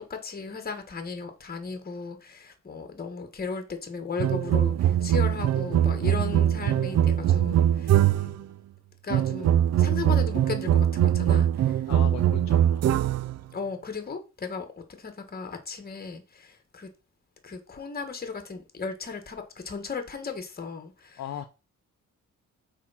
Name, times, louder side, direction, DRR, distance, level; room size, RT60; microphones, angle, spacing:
voice 1, 0.1-8.2 9.0-11.9 13.5-16.9 17.4-21.2, left 5 dB, 30° left, 1.8 m, -36 dB
sound 1, 4.2-8.4 9.1-13.4, right 11 dB, 55° right, 0.4 m, -22 dB
voice 2, 11.9-12.9 21.2-21.4, left 10 dB, 60° left, 0.7 m, -38 dB
6.4 x 4.9 x 5.8 m
wide cardioid pair, 140°, 32 cm